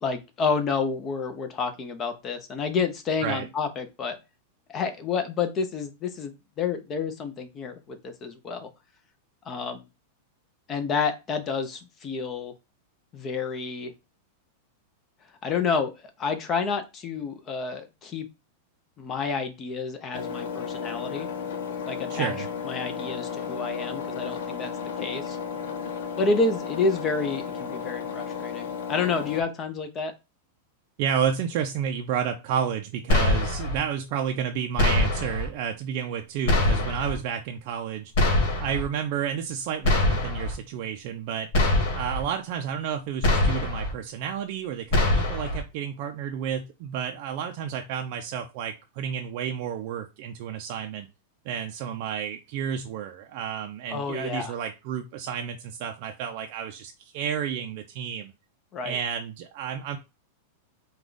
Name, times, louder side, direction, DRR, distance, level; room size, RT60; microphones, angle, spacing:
voice 1, 0.0-4.2 4.7-8.7 9.5-9.8 10.7-12.5 13.1-13.9 15.4-15.9 16.2-18.3 19.0-21.3 21.9-24.7 25.0-25.4 26.2-30.1 53.9-54.5 58.7-59.0, left 4 dB, 25° left, 7 dB, 0.6 m, -29 dB
Engine, 20.1-29.4, left 6 dB, 75° left, 0.8 m, -33 dB
voice 2, 22.1-22.5 31.0-38.1 38.6-41.5 41.9-51.1 51.5-58.3 58.8-60.0, right 8 dB, 50° right, 4 dB, 0.5 m, -31 dB
sound 1, 33.1-33.8 34.8-35.5 36.5-37.2 38.1-38.8 39.8-40.5 41.5-42.2 43.2-43.9 44.9-45.6, left 2 dB, 50° left, 1.9 m, -23 dB
4.8 x 2.3 x 3.9 m, 0.26 s
supercardioid pair, 155°, 0 cm